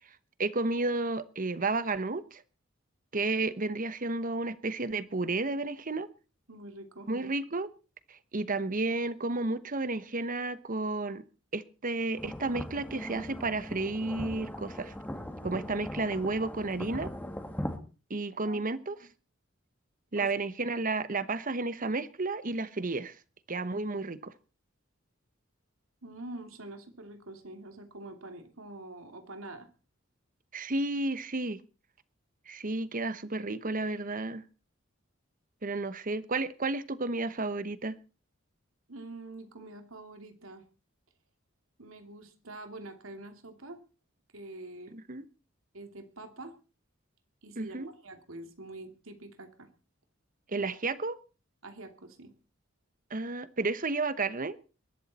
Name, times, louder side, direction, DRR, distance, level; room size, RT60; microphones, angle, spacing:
voice 1, 0.4-2.4 3.1-6.1 7.1-7.7 8.1-11.2 11.5-14.9 15.4-17.1 18.1-19.0 20.1-23.1 23.5-24.3 30.5-31.6 32.5-34.4 35.6-38.0 44.9-45.2 47.6-47.9 50.5-51.2 53.1-54.6, right 3 dB, 40° right, 1.1 m, -32 dB
voice 2, 6.5-7.1 18.5-18.6 20.1-20.3 26.0-29.7 38.9-40.6 41.8-43.8 44.3-44.9 45.7-46.5 47.4-49.7 50.5-50.7 51.6-52.3, right 2 dB, 90° right, 2.8 m, -45 dB
sound 1, 12.2-17.8, equal, 10° left, 2.3 m, -39 dB
21.5 x 12.5 x 4.2 m
head